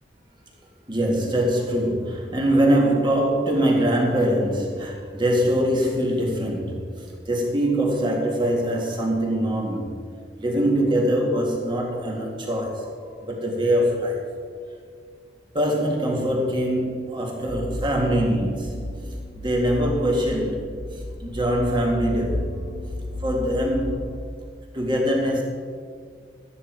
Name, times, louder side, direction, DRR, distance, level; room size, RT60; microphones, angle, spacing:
voice 1, 0.9-9.9 10.4-14.3 15.5-19.0 19.4-22.5 23.2-24.1 24.7-25.4, equal, 25° right, 1.9 m, -23 dB
sound 1, 17.5-24.2, left 1 dB, 45° left, 0.8 m, -33 dB
12.5 x 9.9 x 4.6 m
head